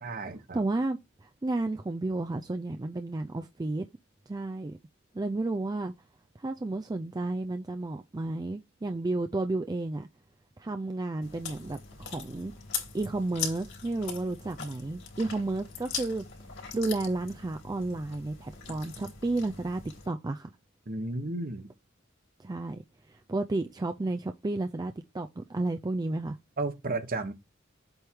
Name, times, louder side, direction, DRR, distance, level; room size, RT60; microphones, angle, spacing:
voice 1, 0.0-0.6 20.9-21.7 26.6-27.3, right 2 dB, 45° right, 1.1 m, -33 dB
voice 2, 0.5-3.8 4.3-4.8 5.1-5.9 6.4-10.1 10.6-12.5 12.9-16.2 16.7-20.5 22.4-26.4, right 2 dB, 20° right, 0.4 m, -32 dB
Chewing mastication, 11.2-20.1, left 6 dB, 65° left, 3.2 m, -41 dB
7.9 x 3.5 x 4.5 m
head